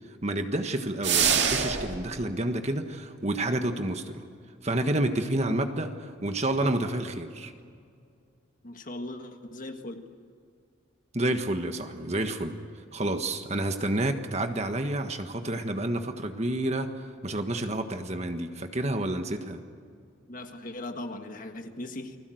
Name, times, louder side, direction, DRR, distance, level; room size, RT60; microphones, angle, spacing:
voice 1, 0.2-4.2 4.6-7.5 11.1-12.6 12.9-17.0 17.2-19.6, right 1 dB, 35° right, 7 dB, 1.5 m, -29 dB
sound 1, 1.0-2.0, right 7 dB, 60° right, 2.1 m, -24 dB
voice 2, 8.6-10.0 20.3-22.2, left 1 dB, 40° left, 6 dB, 1.7 m, -39 dB
30.0 x 21.0 x 7.9 m, 2.3 s
head